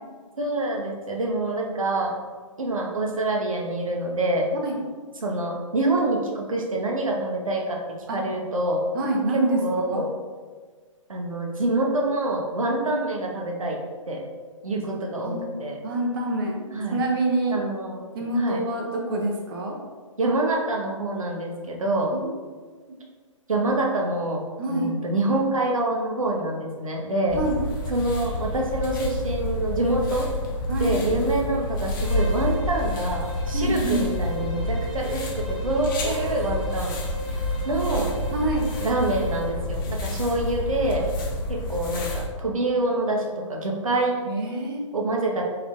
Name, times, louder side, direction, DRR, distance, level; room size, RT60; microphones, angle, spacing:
voice 1, 0.4-2.1 2.6-4.5 5.2-7.8 8.1-8.8 9.3-10.1 11.1-13.8 14.1-14.2 14.6-15.8 16.7-17.0 17.5-18.0 18.4-18.6 20.2-22.1 23.5-24.4 24.7-27.4 27.9-30.3 30.8-37.0 37.7-38.1 38.8-41.0 41.5-44.1 44.9-45.4, right 2 dB, 85° right, 0 dB, 0.7 m, -26 dB
voice 2, 8.9-9.6 9.9-10.0 12.7-12.9 15.2-15.5 15.8-17.6 18.1-19.7 22.1-22.3 24.6-24.9 27.3-27.6 30.7-31.0 33.5-34.1 36.0-36.6 38.3-38.7 44.3-44.8, right 2 dB, 45° right, 0 dB, 0.6 m, -26 dB
sound 1, 27.3-42.2, left 2 dB, 40° left, 0.7 m, -29 dB
Bowed string instrument, 32.0-39.6, right 3 dB, ahead, 0.4 m, -39 dB
3.6 x 3.2 x 2.4 m, 1.5 s
figure-of-eight pair, 125°, 17 cm